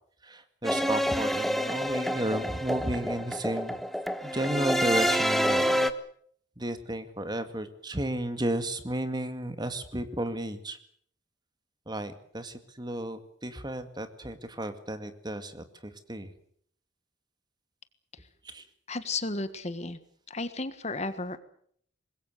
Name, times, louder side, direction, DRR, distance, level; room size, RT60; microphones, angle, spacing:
voice 1, 0.2-3.8 4.2-5.8 6.6-10.8 11.9-16.3 18.4-18.6, right 1 dB, 20° right, 10 dB, 2.0 m, -33 dB
sound 1, 0.6-5.9, equal, ahead, 1.2 m, -28 dB
voice 2, 18.9-20.0 20.3-21.4, left 3 dB, 35° left, 12 dB, 1.6 m, -33 dB
25.5 x 21.0 x 6.7 m, 0.62 s
head